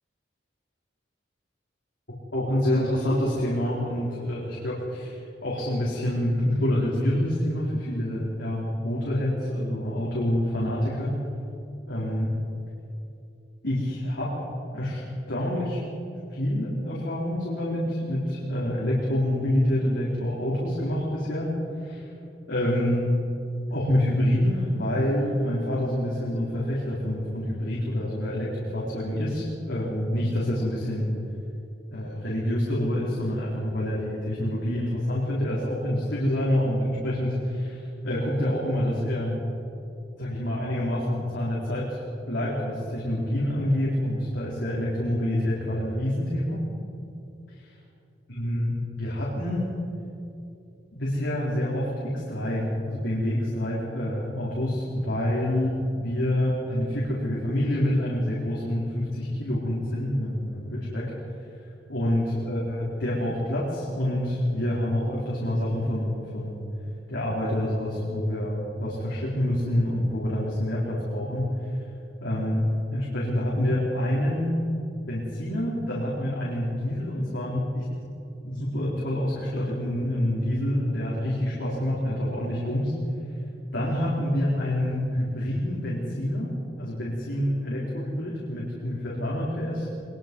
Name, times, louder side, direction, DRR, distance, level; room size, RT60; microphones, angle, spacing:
voice 1, 2.3-11.2 11.9-12.3 13.6-14.3 14.7-15.0 15.3-15.8 16.3-21.5 21.8-22.1 22.5-23.0 23.7-31.1 31.9-39.4 40.2-42.0 42.3-46.6 47.6-47.7 48.3-49.7 50.9-61.1 61.6-66.6 67.1-71.5 71.7-71.8 72.2-74.6 75.1-77.9 78.4-82.9 83.7-86.5 86.8-89.9, left 1 dB, 90° left, -6 dB, 4.5 m, -27 dB
23.0 x 22.0 x 5.5 m, 2.8 s
head